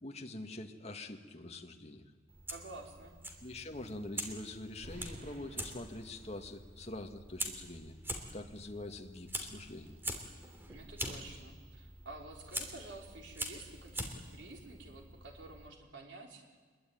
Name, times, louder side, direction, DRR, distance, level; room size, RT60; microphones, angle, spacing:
voice 1, 0.0-2.0 3.4-7.9 8.3-10.0, left 2 dB, 35° left, 3 dB, 1.9 m, -45 dB
Fire, 2.3-15.7, right 1 dB, 10° right, 3.0 m, -44 dB
voice 2, 2.5-3.1 10.7-16.6, right 2 dB, 70° right, 1 dB, 4.3 m, -50 dB
sound 1, 4.8-7.8, equal, 50° right, 5.6 m, -54 dB
25.5 x 22.0 x 9.4 m, 1.5 s
head